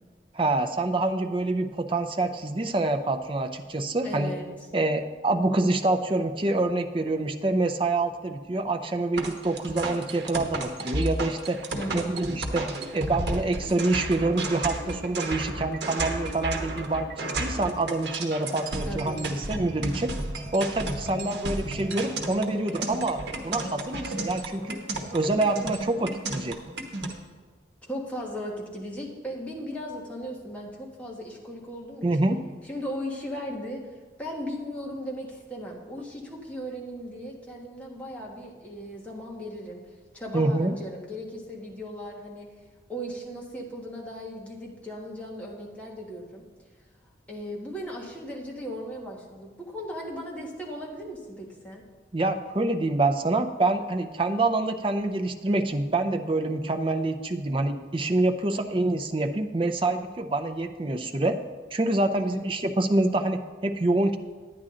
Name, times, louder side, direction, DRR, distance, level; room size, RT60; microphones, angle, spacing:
voice 1, 0.3-4.3 4.7-11.6 11.9-20.1 20.5-24.8 25.1-26.6 32.0-32.4 40.3-40.8 52.1-61.4 61.7-64.2, right 2 dB, 30° right, 6 dB, 0.5 m, -26 dB
voice 2, 4.0-4.5 11.7-12.3 18.8-19.3 21.0-21.5 27.9-32.3 32.6-33.8 34.2-39.8 40.1-42.5 42.9-46.4 47.3-51.8 58.5-58.9 62.1-62.4, equal, 10° left, -3 dB, 1.5 m, -37 dB
sound 1, 9.2-27.1, right 2 dB, 75° right, 1.1 m, -33 dB
sound 2, 22.3-26.2, left 2 dB, 25° left, 2.9 m, -48 dB
10.0 x 9.8 x 3.8 m, 1.4 s
head